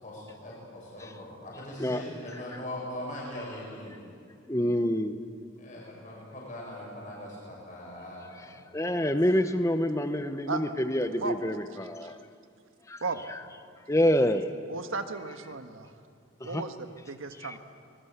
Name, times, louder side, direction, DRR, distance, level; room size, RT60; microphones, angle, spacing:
voice 1, 0.0-4.0 5.6-8.5 9.0-9.1, left 1 dB, 40° left, -4 dB, 6.9 m, -41 dB
voice 2, 4.5-5.2 8.7-12.2 12.9-13.0 13.3-13.4 13.9-14.5 16.4-16.6 17.4-17.6, equal, 15° left, 9 dB, 0.9 m, -27 dB
voice 3, 14.7-15.9 16.4-17.6, right 4 dB, 80° right, 7 dB, 1.5 m, -35 dB
24.0 x 21.0 x 8.2 m, 2.3 s
head